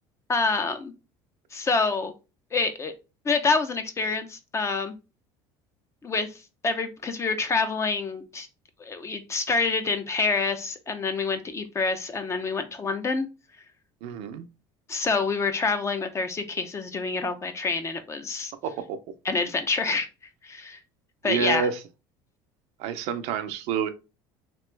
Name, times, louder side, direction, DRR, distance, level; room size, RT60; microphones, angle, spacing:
voice 1, 0.3-0.9 1.5-2.1 2.5-2.9 3.2-4.9 6.0-6.3 6.6-8.5 8.8-13.3 14.9-18.5 19.2-20.1 20.4-20.8 21.2-21.7, left 4 dB, 25° left, 0.6 m, -27 dB
voice 2, 14.0-14.5 18.6-19.0 21.2-21.8 22.8-23.9, right 7 dB, 70° right, 0.6 m, -28 dB
3.0 x 2.9 x 3.3 m
supercardioid pair, 110°, 11 cm